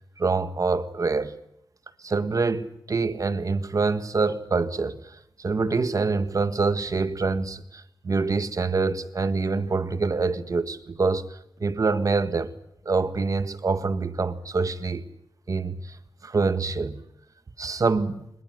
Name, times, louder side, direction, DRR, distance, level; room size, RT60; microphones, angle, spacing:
voice 1, 0.2-1.3 2.0-11.3 11.6-12.5 12.9-15.0 15.5-16.0 16.2-17.0 17.6-18.2, right 4 dB, 45° right, 1.6 m, -25 dB
22.0 x 21.0 x 9.3 m
wide cardioid pair, 115°, 8 cm